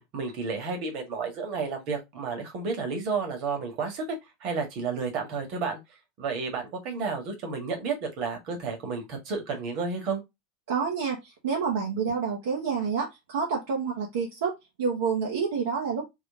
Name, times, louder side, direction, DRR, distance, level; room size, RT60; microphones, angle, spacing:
voice 1, 0.0-5.8 6.2-10.2, right 4 dB, 50° right, 1.6 m, -31 dB
voice 2, 10.7-14.5 14.8-16.0, right 5 dB, 65° right, 1.1 m, -28 dB
3.8 x 3.0 x 3.6 m
figure-of-eight pair, 80°, 0 cm